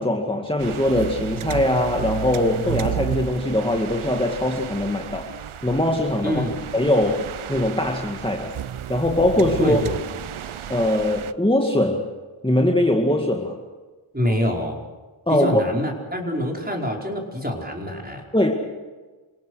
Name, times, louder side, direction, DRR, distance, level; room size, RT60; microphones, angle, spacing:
voice 1, 0.0-5.3 5.6-6.4 6.7-8.5 8.9-9.8 10.7-12.0 12.4-13.6 15.3-15.6 18.3-18.5, left 1 dB, 10° left, 1 dB, 2.1 m, -21 dB
sound 1, 0.6-11.3, right 10 dB, 90° right, 0.7 m, -32 dB
voice 2, 6.2-6.6 9.6-10.0 14.1-14.8 15.3-18.2, equal, 20° right, 0 dB, 5.1 m, -25 dB
27.5 x 18.0 x 6.4 m, 1.3 s
cardioid pair, 40°, 48 cm